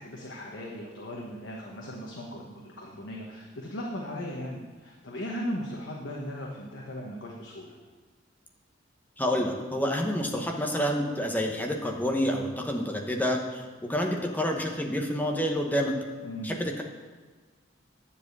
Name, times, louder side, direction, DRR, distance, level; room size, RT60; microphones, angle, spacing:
voice 1, 0.0-7.8 16.2-16.5, equal, 75° left, -1 dB, 1.2 m, -37 dB
voice 2, 9.2-13.6 13.9-15.9 16.4-16.8, equal, 10° left, 1 dB, 1.0 m, -28 dB
9.8 x 5.0 x 8.0 m, 1.4 s
head